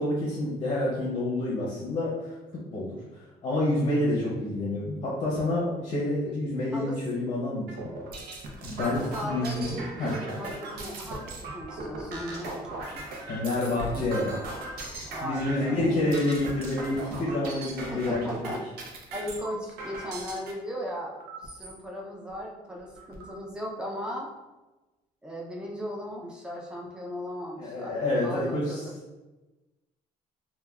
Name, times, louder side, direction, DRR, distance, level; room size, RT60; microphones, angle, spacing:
voice 1, 0.0-2.3 2.7-7.9 8.6-10.1 13.3-14.4 15.2-18.5 27.6-28.8, left 1 dB, 35° left, -5 dB, 0.6 m, -28 dB
sound 1, 7.7-20.5 21.2-21.7 22.3-22.4 22.7-23.3, right 2 dB, 80° right, 0.6 m, -38 dB
voice 2, 8.7-12.6 12.9-13.0 15.1-15.9 17.9-18.7 19.1-24.3 25.2-28.9, equal, 5° right, -2 dB, 0.4 m, -37 dB
3.2 x 2.2 x 2.3 m, 1.1 s
cardioid pair, 140°, 16 cm